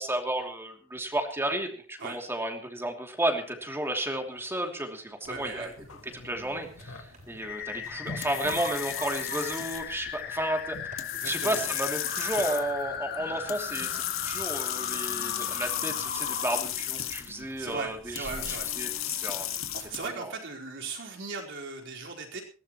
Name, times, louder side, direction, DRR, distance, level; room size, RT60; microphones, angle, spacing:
voice 1, 0.0-5.7 6.2-19.5 20.1-20.3, right 1 dB, 10° right, 4 dB, 2.8 m, -33 dB
sound 1, 3.4-19.2, right 4 dB, 40° right, 6.4 m, -49 dB
sound 2, 5.3-20.1, left 11 dB, 85° left, 1.9 m, -35 dB
voice 2, 5.3-5.7 11.1-11.7 17.3-18.7 19.7-22.4, right 4 dB, 65° right, 0 dB, 4.6 m, -38 dB
sound 3, 7.4-16.6, left 7 dB, 50° left, 1.6 m, -37 dB
21.5 x 17.5 x 3.1 m, 0.38 s
head